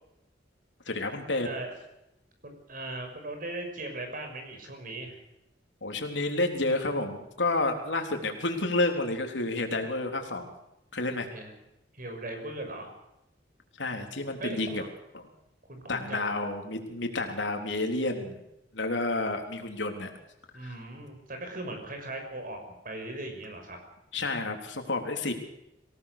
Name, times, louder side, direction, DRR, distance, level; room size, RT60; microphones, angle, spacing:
voice 1, 0.9-1.5 5.8-10.5 10.9-11.3 13.8-14.8 15.1-15.2 15.9-18.4 18.7-20.1 20.6-20.8 24.1-25.3, left 2 dB, 85° left, 4 dB, 3.7 m, -30 dB
voice 2, 2.4-5.1 11.3-11.5 11.9-12.9 14.4-14.9 15.7-16.2 20.5-22.6 22.8-23.8, right 2 dB, 50° right, 5 dB, 6.1 m, -38 dB
25.0 x 18.0 x 6.9 m, 0.87 s
head